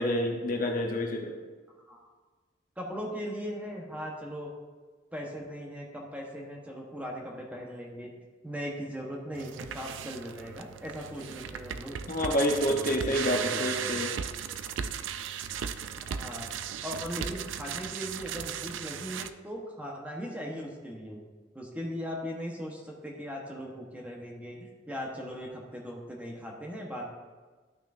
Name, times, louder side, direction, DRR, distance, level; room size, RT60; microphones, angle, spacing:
voice 1, 0.0-1.3 12.1-14.1, equal, 45° left, 2 dB, 0.9 m, -28 dB
voice 2, 2.8-4.5 5.1-8.1 8.4-14.0 16.0-16.5 16.8-21.2 21.5-27.1, equal, 10° right, -1 dB, 1.1 m, -39 dB
sound 1, 9.3-19.3, right 8 dB, 85° right, 0.4 m, -36 dB
12.5 x 6.0 x 2.6 m, 1.4 s
head